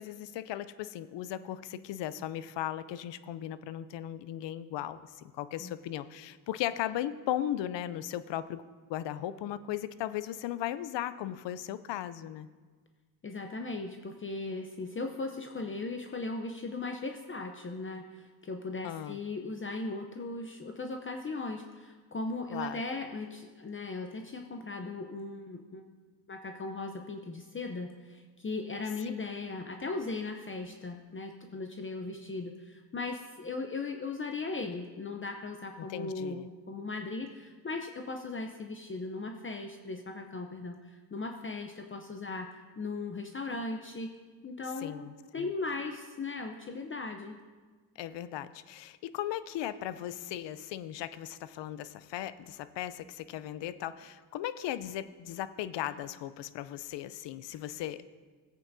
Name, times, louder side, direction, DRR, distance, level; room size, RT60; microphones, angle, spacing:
voice 1, 0.0-8.6 8.9-12.5 18.8-19.2 22.5-22.8 35.8-36.5 44.8-45.5 48.0-58.1, left 12 dB, 75° left, 15 dB, 0.6 m, -37 dB
voice 2, 13.2-25.9 26.3-44.1 44.4-47.4, left 3 dB, 30° left, 4 dB, 0.7 m, -38 dB
15.5 x 8.3 x 2.7 m, 1.4 s
cardioid pair, 80°, 43 cm